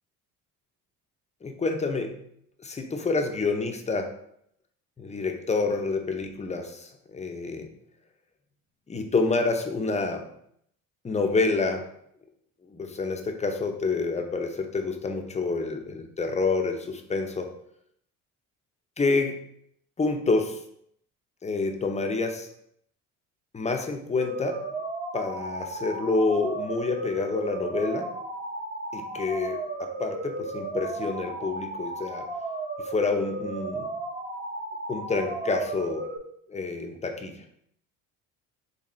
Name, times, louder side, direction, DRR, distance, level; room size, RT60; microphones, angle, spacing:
voice 1, 1.4-2.2 2.6-4.1 5.0-7.7 8.9-10.3 11.0-11.9 12.7-17.5 19.0-19.4 20.0-20.6 21.4-22.5 23.5-24.6 25.1-28.1 28.9-32.2 32.8-33.9 34.9-36.1 36.5-37.4, left 3 dB, 20° left, 4 dB, 0.6 m, -28 dB
sound 1, 24.2-36.2, right 2 dB, 25° right, 0.8 m, -34 dB
4.1 x 3.2 x 3.1 m, 0.71 s
supercardioid pair, 85°, 36 cm